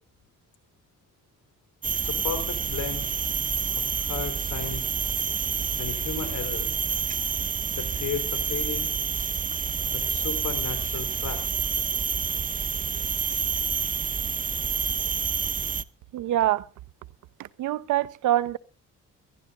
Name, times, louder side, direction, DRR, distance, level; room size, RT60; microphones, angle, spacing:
sound 1, 1.8-15.8, right 6 dB, 25° right, 0.6 m, -28 dB
voice 1, 1.9-3.1 3.7-4.9 5.8-6.8 7.7-8.9 9.8-11.5, left 8 dB, 75° left, 3.8 m, -35 dB
voice 2, 16.1-16.7 17.6-18.6, right 13 dB, 80° right, 0.8 m, -24 dB
23.5 x 12.5 x 2.5 m
cardioid pair, 90°, 30 cm